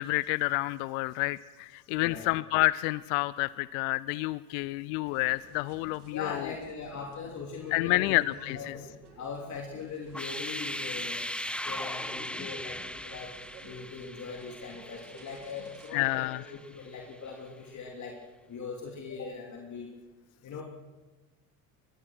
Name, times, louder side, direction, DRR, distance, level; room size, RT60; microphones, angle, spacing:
voice 1, 0.0-6.5 7.7-8.8 15.9-16.4, left 21 dB, 65° left, 19 dB, 0.7 m, -29 dB
voice 2, 2.0-2.3 6.1-8.9 9.1-11.3 11.6-13.3 13.6-18.2 18.5-19.9 20.4-20.6, left 5 dB, 40° left, 0 dB, 3.3 m, -40 dB
sound 1, 5.0-15.9, right 5 dB, 85° right, 2.2 m, -54 dB
sound 2, 10.1-16.9, left 1 dB, ahead, 1.0 m, -39 dB
23.5 x 22.0 x 6.2 m, 1.2 s
hypercardioid pair, 70°, 43 cm